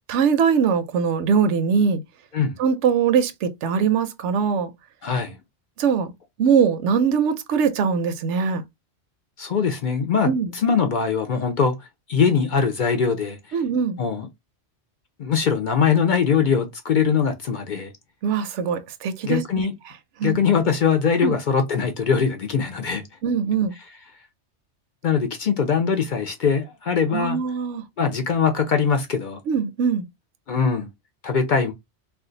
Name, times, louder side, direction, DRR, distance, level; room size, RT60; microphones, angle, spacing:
voice 1, 0.1-2.0 2.6-4.7 5.8-6.1 6.4-8.6 10.2-10.5 13.5-14.0 18.2-19.4 20.2-20.4 21.2-21.3 23.2-23.7 27.1-27.8 29.5-30.0, right 6 dB, 85° right, 0.9 m, -21 dB
voice 2, 5.0-5.4 9.4-11.8 12.1-13.4 14.0-14.3 15.2-17.9 19.2-19.7 20.2-23.0 25.0-27.4 28.0-29.4 30.5-30.9 31.2-31.7, left 6 dB, 55° left, 0.6 m, -22 dB
2.4 x 2.3 x 3.8 m
omnidirectional pair, 1.2 m